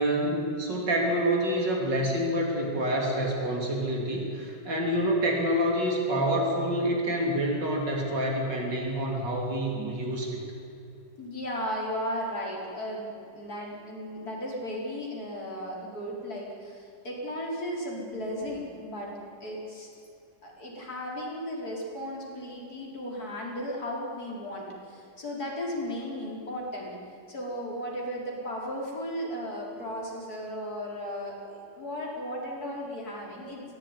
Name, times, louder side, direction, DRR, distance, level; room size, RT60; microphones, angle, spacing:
voice 1, 0.0-10.4, equal, 70° right, 0 dB, 3.8 m, -27 dB
voice 2, 11.2-19.1 19.4-19.9 20.4-26.9 27.3-33.8, equal, 55° left, -2 dB, 5.0 m, -35 dB
23.0 x 16.5 x 9.9 m, 2.5 s
omnidirectional pair, 2.0 m